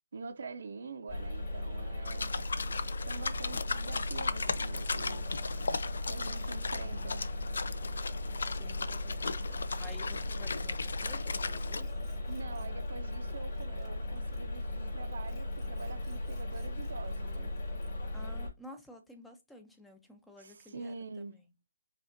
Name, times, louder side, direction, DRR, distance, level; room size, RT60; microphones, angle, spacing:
voice 1, 0.1-2.3 3.0-5.3 6.1-7.2 12.3-17.6 20.4-21.4, right 4 dB, 65° right, 0.6 m, -45 dB
sound 1, 1.1-18.5, left 1 dB, 60° left, 2.0 m, -37 dB
sound 2, 2.1-11.8, left 4 dB, 75° left, 0.4 m, -37 dB
voice 2, 8.5-12.1 18.1-20.9, left 1 dB, 5° left, 0.5 m, -52 dB
sound 3, 9.3-14.8 15.1-18.2, left 3 dB, 25° left, 1.1 m, -58 dB
5.1 x 2.4 x 2.6 m
hypercardioid pair, 160°, 0 cm